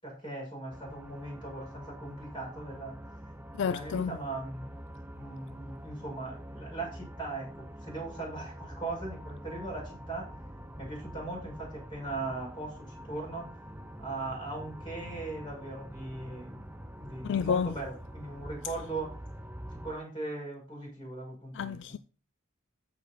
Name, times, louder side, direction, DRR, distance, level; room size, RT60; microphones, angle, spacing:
voice 1, 0.0-2.9 3.6-4.8 5.0-10.3 10.8-13.5 14.0-16.7 17.0-19.1 19.7-21.8, right 2 dB, 20° left, 6.3 m, -39 dB
sound 1, 0.7-20.0, equal, 10° right, 0.6 m, -45 dB
voice 2, 3.6-4.2 17.2-17.8 21.5-22.0, left 6 dB, 55° left, 0.4 m, -30 dB
14.0 x 5.2 x 4.1 m
head